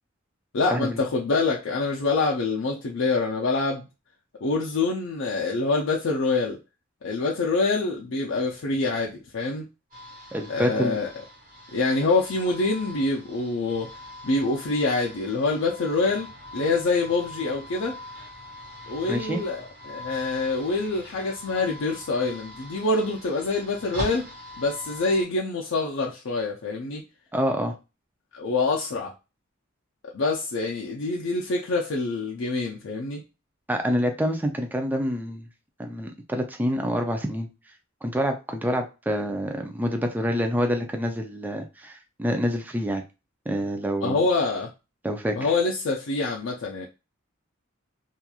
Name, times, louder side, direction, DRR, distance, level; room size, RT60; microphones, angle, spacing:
voice 1, 0.5-3.9 4.4-6.6 7.0-9.7 10.5-11.1 11.7-13.9 14.2-18.0 18.9-24.3 24.6-27.0 28.3-29.1 30.1-33.2 44.0-44.7 45.3-46.9, left 3 dB, 65° left, -1 dB, 0.5 m, -26 dB
sound 1, 9.9-25.2, left 1 dB, 45° right, 1.1 m, -42 dB
voice 2, 10.3-11.0 19.1-19.4 27.3-27.7 33.7-35.5 35.8-37.5 38.0-43.0 43.5-44.2 45.0-45.4, equal, 10° right, 4 dB, 0.4 m, -27 dB
2.9 x 2.4 x 2.3 m, 0.28 s
head